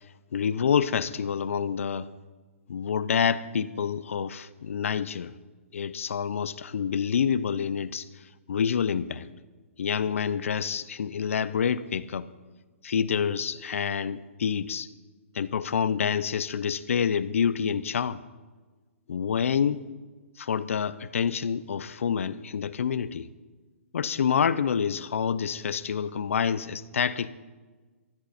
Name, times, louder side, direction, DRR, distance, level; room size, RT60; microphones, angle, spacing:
voice 1, 0.3-2.1 2.7-5.3 5.7-8.1 8.5-9.3 9.8-12.3 12.8-14.9 15.3-18.2 19.1-19.9 20.4-23.3 23.9-27.3, left 7 dB, 70° left, 17 dB, 0.8 m, -27 dB
20.0 x 13.5 x 4.3 m, 1.3 s
hypercardioid pair, 160°, 8 cm